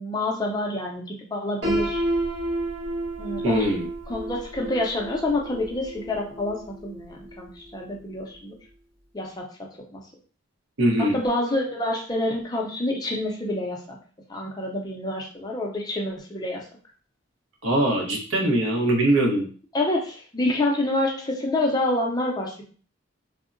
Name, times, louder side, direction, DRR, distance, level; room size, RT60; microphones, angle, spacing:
voice 1, 0.0-2.0 3.2-3.7 4.1-8.6 9.1-9.5 9.9-10.0 11.0-14.0 14.3-16.6 19.7-22.6, left 1 dB, 20° left, 0 dB, 0.4 m, -27 dB
Piano, 1.6-7.5, right 1 dB, 65° right, 1.2 m, -31 dB
voice 2, 3.4-3.8 10.8-11.2 17.6-19.5, right 1 dB, 80° right, 1 dB, 0.8 m, -22 dB
3.5 x 2.0 x 2.5 m, 0.41 s
head